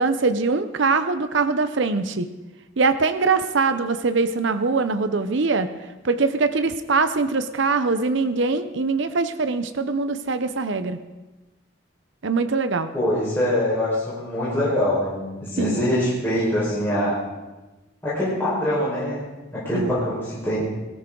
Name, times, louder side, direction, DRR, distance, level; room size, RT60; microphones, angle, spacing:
voice 1, 0.0-2.3 2.8-5.7 6.0-11.0 12.2-12.9 15.6-15.8 19.7-19.9, right 4 dB, 60° right, 10 dB, 0.7 m, -22 dB
voice 2, 12.9-17.1 18.0-19.2 19.5-20.6, left 1 dB, 10° left, -10 dB, 4.6 m, -23 dB
19.0 x 13.5 x 3.8 m, 1.1 s
head